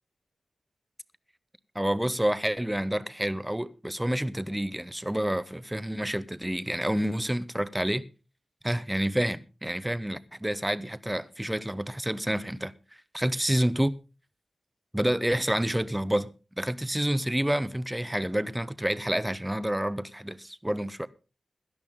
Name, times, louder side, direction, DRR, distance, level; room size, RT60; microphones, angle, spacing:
voice 1, 1.7-8.0 8.6-12.7 13.1-13.9 14.9-21.1, right 1 dB, 5° right, 0.8 m, -28 dB
17.0 x 12.0 x 3.6 m
wide cardioid pair, 110°, 0 cm